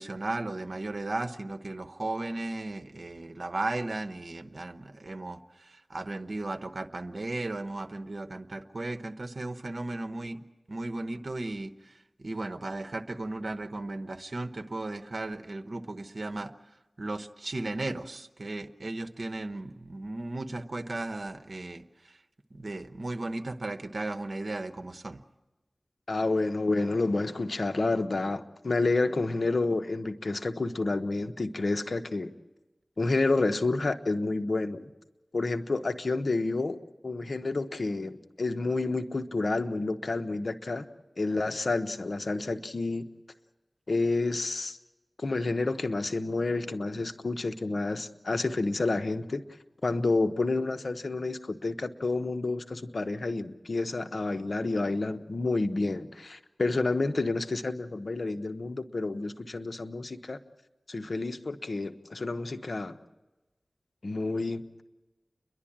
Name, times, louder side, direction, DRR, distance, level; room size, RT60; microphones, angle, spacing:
voice 1, 0.0-10.4 10.7-11.9 12.2-16.5 17.0-22.2 22.5-25.2, right 2 dB, 65° right, 8 dB, 1.0 m, -35 dB
voice 2, 26.1-32.3 33.0-34.9 35.3-36.8 37.0-40.9 41.2-43.1 43.9-44.8 45.2-49.4 49.8-60.4 60.9-63.0 64.0-64.6, left 3 dB, 70° left, 8 dB, 1.0 m, -29 dB
30.0 x 11.5 x 8.7 m, 1.1 s
cardioid pair, 40°, 0 cm